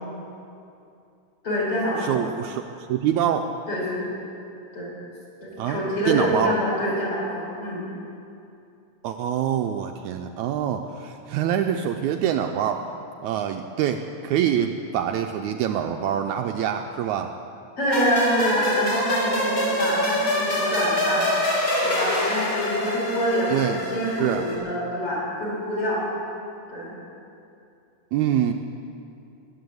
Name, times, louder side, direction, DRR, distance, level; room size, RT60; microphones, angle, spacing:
voice 1, 1.4-2.2 3.7-4.1 4.7-4.9 5.4-7.9 17.8-21.3 21.8-26.1 26.7-26.9, equal, 45° left, -5 dB, 5.9 m, -26 dB
voice 2, 2.0-2.6 2.9-3.5 5.6-6.5 9.0-12.9 13.2-17.3 23.5-23.8 24.2-24.5 28.1-28.5, right 9 dB, 80° right, 5 dB, 1.8 m, -25 dB
sound 1, 17.9-24.6, left 1 dB, 25° left, 3.5 m, -25 dB
20.5 x 8.8 x 7.8 m, 2.6 s
omnidirectional pair, 3.7 m